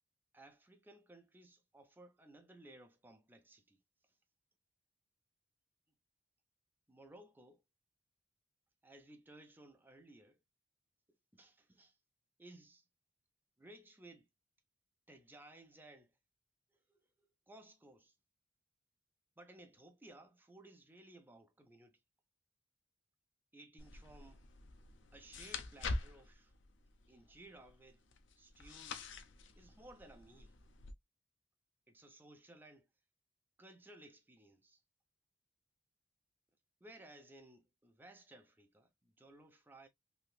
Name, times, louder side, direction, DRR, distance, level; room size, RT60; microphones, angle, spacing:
voice 1, 0.3-3.8 6.9-7.6 8.8-10.4 11.3-12.0 12.4-12.8 13.6-14.3 15.1-16.1 16.9-17.0 17.5-18.1 19.4-22.0 23.5-24.4 25.1-26.5 27.1-28.0 28.4-29.1 29.6-30.5 31.9-32.9 33.6-34.8 36.8-39.9, right 1 dB, 10° right, 0.6 m, -58 dB
sound 1, 23.8-30.9, left 3 dB, 75° left, 0.6 m, -46 dB
3.2 x 2.8 x 2.3 m
head